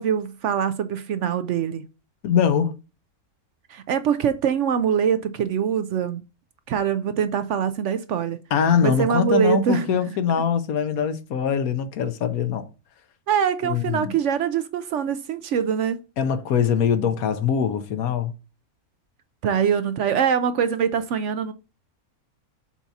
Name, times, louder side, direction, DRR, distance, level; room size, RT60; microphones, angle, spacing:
voice 1, 0.0-1.8 3.7-6.2 6.7-8.4 8.8-10.0 13.3-16.0 19.4-21.5, right 8 dB, 65° right, 0.8 m, -23 dB
voice 2, 2.2-2.7 8.5-12.7 13.6-14.1 16.2-18.3, left 7 dB, 80° left, 1.3 m, -22 dB
7.1 x 2.8 x 5.8 m
omnidirectional pair, 1.5 m